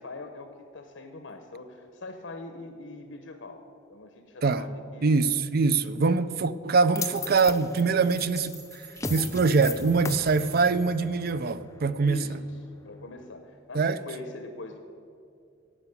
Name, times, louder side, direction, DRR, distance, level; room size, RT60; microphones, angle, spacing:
voice 1, 0.0-3.6 3.9-5.3 6.0-6.2 12.0-14.8, left 2 dB, 85° left, 0.8 m, -43 dB
voice 2, 5.0-12.2 13.7-14.0, right 4 dB, 55° right, 0.5 m, -24 dB
sound 1, 7.0-13.2, left 4 dB, 15° left, 0.6 m, -39 dB
sound 2, 8.0-11.2, right 7 dB, 75° right, 1.9 m, -49 dB
16.5 x 5.9 x 8.3 m
head